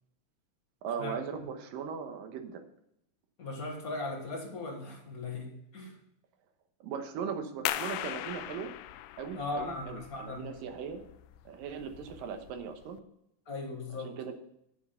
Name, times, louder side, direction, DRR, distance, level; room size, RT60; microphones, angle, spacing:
voice 1, 0.8-2.6 6.8-8.7 9.2-11.1 11.5-13.0 14.0-14.3, right 6 dB, 75° right, 6 dB, 2.8 m, -38 dB
voice 2, 3.4-5.9 9.3-10.5 13.5-14.2, left 3 dB, 40° left, 1 dB, 1.4 m, -38 dB
sound 1, 7.7-13.0, left 13 dB, 80° left, 2.0 m, -40 dB
8.7 x 8.5 x 5.6 m, 0.78 s
omnidirectional pair, 4.1 m